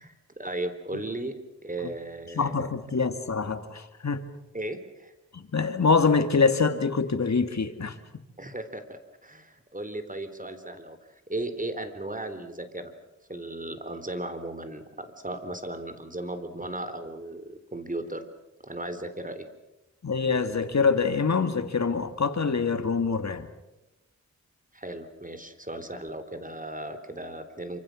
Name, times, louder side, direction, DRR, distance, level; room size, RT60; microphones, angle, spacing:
voice 1, 0.0-2.7 4.5-5.1 8.4-12.9 13.3-18.2 18.6-19.5 24.7-27.8, right 1 dB, 25° right, 10 dB, 3.4 m, -36 dB
voice 2, 2.3-4.2 5.3-8.0 20.0-23.5, left 5 dB, 65° left, 8 dB, 2.2 m, -25 dB
27.5 x 25.5 x 6.4 m, 0.96 s
cardioid pair, 45°, 29 cm